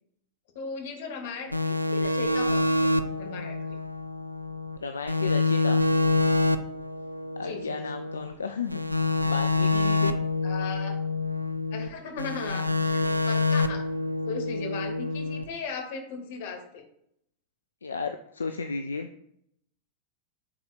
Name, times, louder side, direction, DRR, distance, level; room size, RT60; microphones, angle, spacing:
voice 1, 0.5-3.8 7.4-7.8 10.4-11.0 11.7-13.9 14.3-16.8, left 5 dB, 55° left, 4 dB, 1.2 m, -37 dB
sound 1, 1.5-4.8 5.1-8.3 8.7-11.9 12.2-15.4, left 2 dB, 90° right, 0.3 m, -26 dB
voice 2, 4.8-5.8 7.4-8.8 9.2-10.2 17.8-19.1, left 5 dB, 75° left, 7 dB, 0.3 m, -33 dB
9.8 x 4.2 x 2.3 m, 0.72 s
figure-of-eight pair, 90°, 0 cm